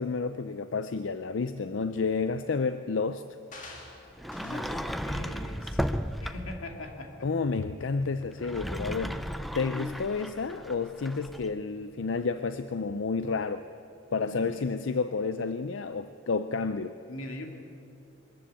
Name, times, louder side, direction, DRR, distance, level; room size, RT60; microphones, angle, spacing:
voice 1, 0.0-3.2 7.2-9.2 9.5-13.6 14.1-16.9, left 4 dB, 65° left, 11 dB, 0.5 m, -30 dB
sound 1, 3.5-4.7 5.1-5.4 5.9-6.1, left 2 dB, 40° left, 2.4 m, -48 dB
Sliding door, 4.2-6.7 8.3-11.5, equal, ahead, 0.5 m, -34 dB
voice 2, 4.4-5.9 6.2-7.2 14.2-14.6 17.1-17.5, left 1 dB, 90° left, 3 dB, 2.4 m, -41 dB
21.5 x 14.0 x 8.8 m, 2.7 s
head